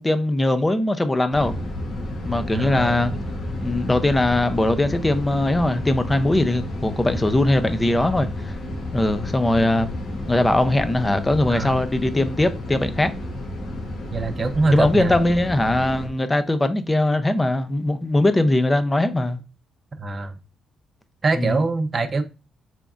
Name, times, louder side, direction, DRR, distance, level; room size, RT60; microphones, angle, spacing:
voice 1, 0.0-1.5 2.2-3.1 3.6-8.5 8.9-9.9 10.2-13.1 14.7-19.4 21.3-21.6, left 1 dB, 15° left, 0.5 m, -20 dB
sound 1, 1.3-16.1, left 1 dB, 65° left, 1.2 m, -31 dB
voice 2, 2.5-3.0 11.5-11.8 14.1-15.1 20.0-20.3 21.2-22.2, right 3 dB, 35° right, 0.6 m, -23 dB
3.9 x 3.5 x 2.4 m
cardioid pair, 90°, 0 cm